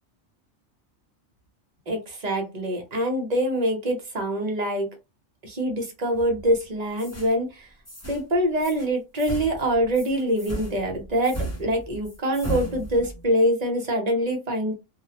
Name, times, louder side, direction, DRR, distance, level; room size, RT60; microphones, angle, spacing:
voice 1, 1.9-4.9 5.4-7.7 8.1-14.7, equal, 40° right, 2 dB, 0.7 m, -25 dB
sound 1, 6.1-6.6 7.0-7.3 7.9-8.3 8.6-8.9 9.2-13.3, right 2 dB, 15° left, 0.9 m, -35 dB
2.4 x 2.0 x 2.8 m, 0.26 s
omnidirectional pair, 1.2 m